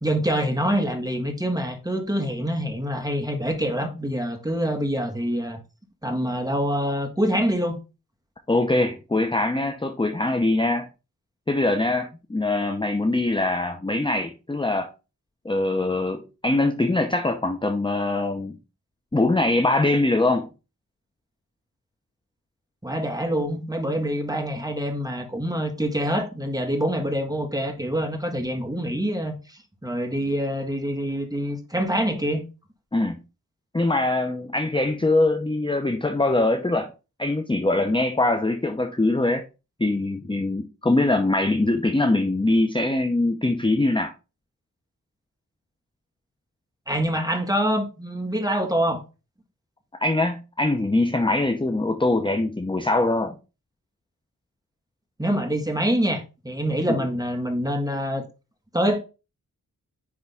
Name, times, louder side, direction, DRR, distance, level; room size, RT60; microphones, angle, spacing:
voice 1, 0.0-5.6 6.0-7.8 22.8-32.4 46.9-49.0 55.2-58.2 58.7-59.0, equal, 10° right, 1.6 m, -25 dB
voice 2, 8.5-10.9 11.5-14.9 15.4-18.6 19.1-20.5 32.9-33.2 33.7-36.9 37.2-39.5 39.8-44.1 50.0-53.4 56.9-57.0, left 2 dB, 15° left, 0.7 m, -23 dB
9.7 x 3.6 x 3.5 m
wide cardioid pair, 85°, 35 cm